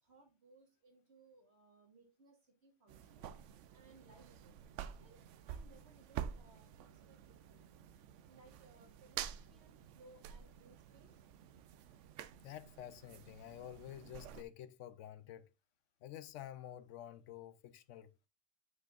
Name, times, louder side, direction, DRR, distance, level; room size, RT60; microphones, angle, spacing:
voice 1, 0.0-3.3 3.7-4.6 5.0-7.7 8.2-11.3, right 2 dB, 65° right, 2.1 m, -65 dB
Hand Touching, 2.9-14.4, right 9 dB, 85° right, 0.9 m, -49 dB
voice 2, 12.4-15.5 16.0-18.3, left 11 dB, 85° left, 1.0 m, -50 dB
7.6 x 6.3 x 2.5 m
omnidirectional pair, 1.2 m